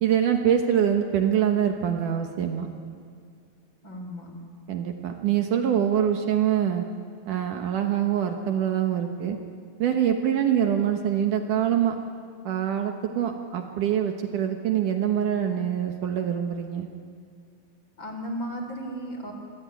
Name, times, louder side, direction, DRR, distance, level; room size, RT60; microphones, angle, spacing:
voice 1, 0.0-2.7 4.7-6.8 7.3-9.4 9.8-12.0 12.5-16.9, right 9 dB, 65° right, 4 dB, 2.6 m, -24 dB
voice 2, 3.8-4.4 18.0-19.3, equal, 30° left, 3 dB, 3.9 m, -35 dB
25.5 x 21.5 x 9.2 m, 2.2 s
omnidirectional pair, 4.2 m